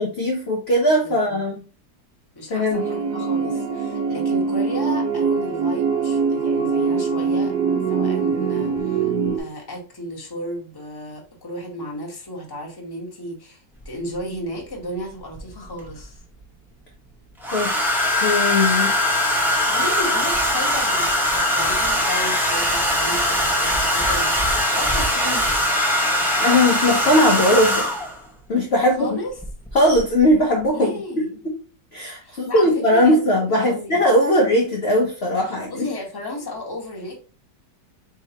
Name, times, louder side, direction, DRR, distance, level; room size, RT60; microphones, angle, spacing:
voice 1, 0.0-1.6 2.5-2.8 17.5-17.8 18.1-19.0 26.4-27.9 28.5-29.2 29.7-30.9 31.4-31.5 31.9-35.9, left 1 dB, 50° left, -1 dB, 0.8 m, -19 dB
voice 2, 1.0-1.4 2.3-7.5 7.9-9.1 9.4-16.2 19.7-25.5 29.0-29.3 30.7-31.3 32.2-33.2 33.5-34.0 35.4-37.2, left 1 dB, 15° left, 0 dB, 1.0 m, -33 dB
sound 1, 2.7-9.4, right 5 dB, 70° right, 1.3 m, -23 dB
Domestic sounds home sounds, 13.8-13.9 15.3-16.0 17.4-28.2 29.4-29.7 29.9-30.3, left 1 dB, ahead, 0.5 m, -21 dB
4.5 x 3.7 x 2.9 m, 0.37 s
omnidirectional pair, 1.8 m